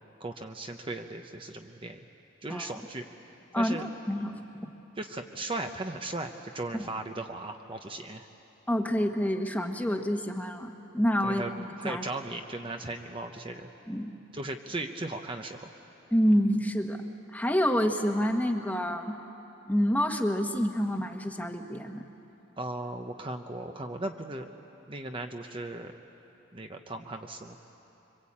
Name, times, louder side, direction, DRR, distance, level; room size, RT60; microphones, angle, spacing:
voice 1, 0.0-2.0 2.4-3.1 3.5-3.9 5.0-8.3 11.2-11.5 11.8-13.7 14.3-15.7 22.6-24.5 24.9-25.9 26.5-27.6, right 2 dB, 25° right, 5 dB, 0.8 m, -37 dB
voice 2, 3.5-4.7 8.7-12.0 13.9-14.1 16.1-17.0 17.3-19.2 19.7-22.0, equal, 10° left, 4 dB, 1.3 m, -28 dB
26.0 x 24.0 x 8.7 m, 3.0 s
head